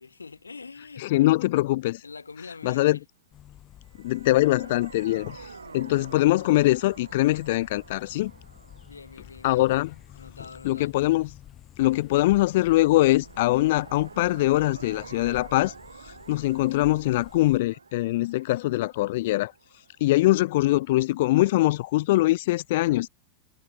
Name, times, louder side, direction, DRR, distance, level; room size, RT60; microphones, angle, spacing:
voice 1, 0.0-1.3 2.0-3.0 5.6-5.8 8.9-9.6 10.1-10.9, left 4 dB, 75° left, 2.9 m, -44 dB
voice 2, 1.0-2.0 2.6-3.0 4.0-8.3 9.4-9.9 10.6-11.3 11.8-15.7 16.3-19.5 20.0-23.1, left 17 dB, 55° left, 0.5 m, -23 dB
sound 1, 3.3-17.6, left 12 dB, 30° left, 2.2 m, -50 dB
sound 2, 3.8-11.1 13.0-20.8, right 5 dB, 75° right, 6.1 m, -48 dB
figure-of-eight pair, 90°, 0 cm